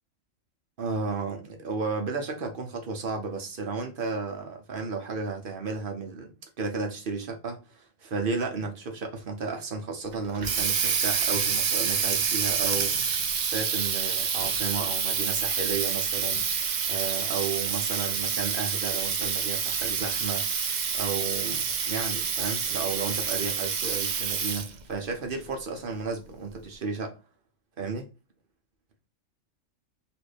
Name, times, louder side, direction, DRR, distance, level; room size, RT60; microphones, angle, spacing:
voice 1, 0.8-12.9 13.4-20.5 20.9-27.2 27.8-28.1, right 4 dB, 50° right, 0.8 m, -33 dB
Water tap faucet, 10.1-24.8, right 6 dB, 85° right, 0.4 m, -28 dB
3.3 x 2.5 x 3.2 m
omnidirectional pair, 1.4 m